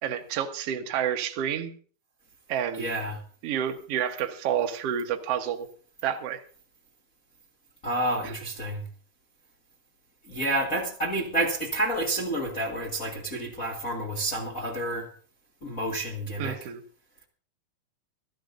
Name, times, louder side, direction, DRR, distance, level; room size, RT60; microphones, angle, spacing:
voice 1, 0.0-1.7 2.5-2.9 3.4-5.7 6.0-6.4 8.2-8.3 16.4-16.8, right 9 dB, 70° right, 5 dB, 1.5 m, -29 dB
voice 2, 2.8-3.2 7.8-8.8 10.3-15.1 15.6-16.6, right 1 dB, 45° left, 0 dB, 1.1 m, -29 dB
26.0 x 11.5 x 2.6 m, 0.43 s
omnidirectional pair, 4.6 m